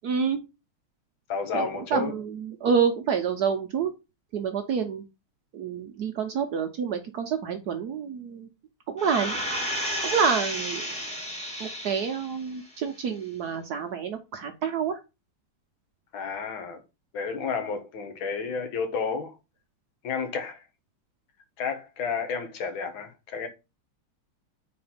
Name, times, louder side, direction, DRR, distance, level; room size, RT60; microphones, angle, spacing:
voice 1, 0.0-0.4 1.5-1.7 1.9-3.9 4.3-5.0 5.5-8.5 8.9-9.4 10.0-10.9 11.6-15.0, right 6 dB, 65° right, 1.0 m, -28 dB
voice 2, 1.3-2.1 16.1-16.8 17.1-19.4 20.0-20.6 21.6-23.5, left 5 dB, 75° left, 1.9 m, -31 dB
sound 1, 9.0-12.4 12.8-12.9, equal, 5° left, 1.4 m, -32 dB
4.3 x 4.2 x 5.6 m
omnidirectional pair, 2.3 m